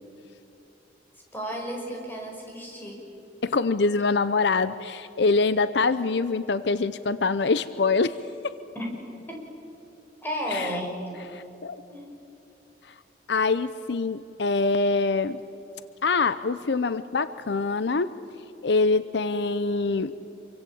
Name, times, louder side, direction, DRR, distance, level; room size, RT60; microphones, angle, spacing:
voice 1, 1.3-3.0 8.8-8.9 9.3-9.4 10.2-11.0 11.9-12.2, equal, 10° left, -1 dB, 5.5 m, -33 dB
voice 2, 3.4-8.2 8.4-8.6 10.5-10.7 11.3-11.8 13.3-15.4 16.0-18.1 18.6-20.1, left 3 dB, 70° left, 14 dB, 0.7 m, -24 dB
27.0 x 24.0 x 8.6 m, 3.0 s
head